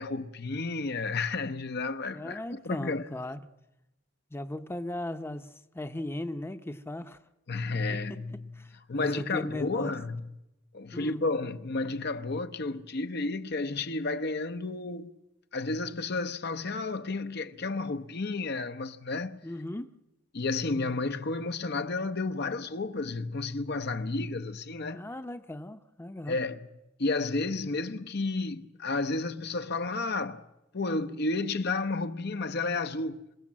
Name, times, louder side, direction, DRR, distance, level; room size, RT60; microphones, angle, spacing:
voice 1, 0.0-3.1 7.5-8.5 8.9-10.3 10.7-15.1 15.5-19.4 20.3-25.1 26.3-26.6 27.0-30.4 30.7-33.2, left 3 dB, 55° left, 0.9 m, -32 dB
voice 2, 2.1-3.4 4.3-7.2 8.1-8.2 8.5-10.0 10.9-11.2 19.4-19.9 24.9-26.4, left 1 dB, 10° left, 0.8 m, -37 dB
27.0 x 17.0 x 7.4 m
head